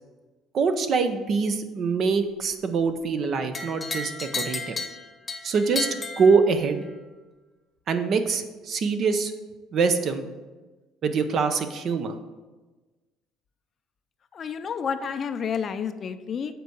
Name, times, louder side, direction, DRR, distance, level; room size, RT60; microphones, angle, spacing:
voice 1, 0.5-4.8 5.4-6.8 7.9-9.3 9.7-10.3 11.0-12.2, right 5 dB, 45° right, 8 dB, 0.7 m, -24 dB
sound 1, 3.5-6.9, left 3 dB, 20° left, 1.0 m, -33 dB
voice 2, 14.3-16.5, left 6 dB, 35° left, 10 dB, 0.5 m, -30 dB
8.0 x 4.6 x 6.2 m, 1.2 s
cardioid pair, 130°, 0 cm